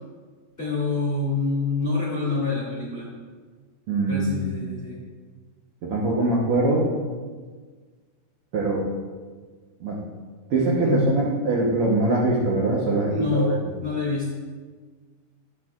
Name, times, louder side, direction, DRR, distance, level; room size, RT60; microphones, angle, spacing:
voice 1, 0.6-3.1 4.1-5.0 10.8-11.1 13.1-13.5 13.8-14.3, left 3 dB, 30° left, -6 dB, 1.2 m, -26 dB
voice 2, 3.9-4.5 5.9-6.9 8.5-8.9 9.8-10.0 10.5-13.6, right 2 dB, 85° right, -4 dB, 1.2 m, -23 dB
11.5 x 8.1 x 2.4 m, 1.5 s
omnidirectional pair, 4.3 m